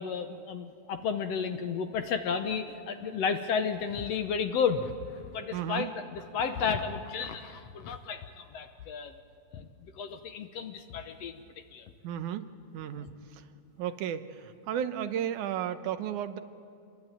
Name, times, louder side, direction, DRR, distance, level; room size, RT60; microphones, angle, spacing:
voice 1, 0.0-4.9 5.3-9.1 9.5-9.7 10.0-11.4 11.7-11.9 13.0-13.1, left 6 dB, 65° left, 7 dB, 1.8 m, -32 dB
voice 2, 5.5-5.9 12.0-12.5 12.7-13.4 13.8-16.4, right 10 dB, 85° right, 10 dB, 2.4 m, -34 dB
28.0 x 21.5 x 9.1 m, 2.4 s
omnidirectional pair, 3.5 m